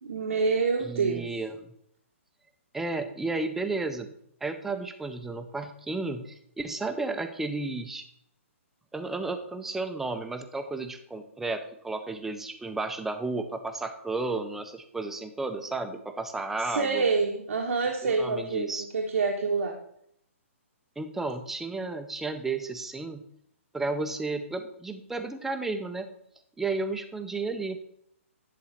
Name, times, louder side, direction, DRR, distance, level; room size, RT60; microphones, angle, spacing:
voice 1, 0.0-1.4 16.6-19.8, right 4 dB, 85° right, 0 dB, 1.3 m, -27 dB
voice 2, 0.8-1.7 2.7-4.1 4.4-8.0 8.9-17.1 18.0-18.9 21.0-23.2 23.7-26.1 26.6-27.8, right 3 dB, 5° right, 8 dB, 0.6 m, -33 dB
10.5 x 3.8 x 5.7 m, 0.71 s
hypercardioid pair, 150°, 7 cm